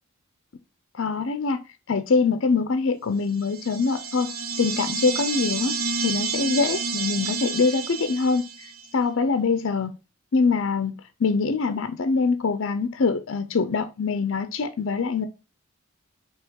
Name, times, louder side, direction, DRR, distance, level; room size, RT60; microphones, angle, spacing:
voice 1, 1.0-1.6 1.9-4.3 4.6-5.8 6.0-8.4 8.9-9.9 10.3-15.3, left 4 dB, 60° left, 0.5 m, -24 dB
sound 1, 3.4-8.8, right 5 dB, 75° right, 0.8 m, -30 dB
4.6 x 3.0 x 3.5 m
head